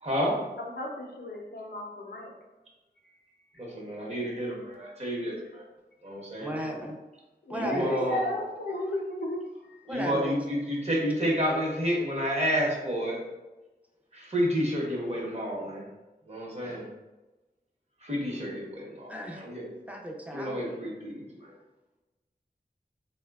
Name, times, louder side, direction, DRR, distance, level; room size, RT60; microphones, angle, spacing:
voice 1, 0.0-0.4 3.6-5.6 6.0-6.6 7.5-8.2 9.9-13.2 14.1-15.8 16.3-16.9 18.0-19.7 20.3-21.5, equal, 40° right, -3 dB, 0.8 m, -30 dB
voice 2, 0.6-2.3 7.4-9.8, left 1 dB, 80° left, 0 dB, 0.5 m, -34 dB
voice 3, 6.4-7.0 7.5-8.0 8.9-9.0 9.9-10.4 19.1-19.4 19.9-20.6, right 1 dB, 10° right, 0 dB, 0.4 m, -35 dB
3.2 x 2.1 x 2.3 m, 1.1 s
wide cardioid pair, 60°, 17 cm